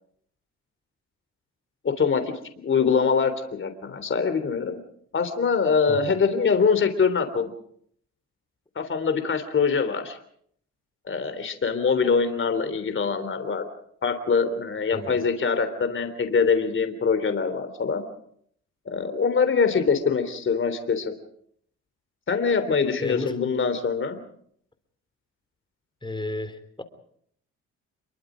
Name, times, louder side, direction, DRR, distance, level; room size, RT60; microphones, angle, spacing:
voice 1, 1.8-2.3 2.6-4.8 5.1-7.5 8.7-10.2 11.0-13.6 14.0-18.0 18.8-21.1 22.3-24.2, left 5 dB, 40° left, 8 dB, 3.4 m, -23 dB
voice 2, 14.9-15.2 23.0-23.5 26.0-26.8, left 2 dB, 15° left, 10 dB, 3.4 m, -33 dB
28.0 x 23.0 x 5.1 m, 0.66 s
cardioid pair, 90°, 30 cm